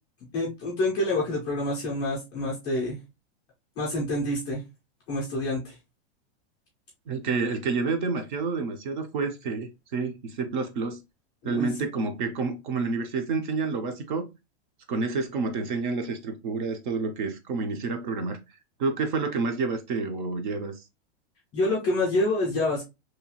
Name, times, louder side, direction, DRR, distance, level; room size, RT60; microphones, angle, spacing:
voice 1, 0.3-3.0 3.8-4.6 5.1-5.8 11.4-11.7 21.5-22.8, left 1 dB, 15° left, -4 dB, 0.4 m, -27 dB
voice 2, 7.1-11.0 11.4-14.3 14.9-18.4 18.8-20.8, right 4 dB, 45° right, 7 dB, 0.5 m, -29 dB
2.8 x 2.3 x 2.7 m, 0.24 s
supercardioid pair, 175°, 33 cm